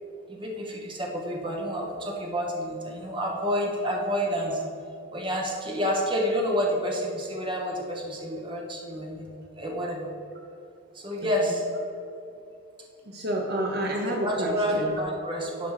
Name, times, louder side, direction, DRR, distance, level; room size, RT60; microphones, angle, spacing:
voice 1, 0.3-4.6 5.1-10.1 10.9-11.6 14.0-15.7, equal, 25° right, 0 dB, 1.2 m, -29 dB
voice 2, 13.1-15.0, right 1 dB, 50° right, 0 dB, 0.9 m, -29 dB
11.0 x 5.1 x 4.9 m, 2.6 s
head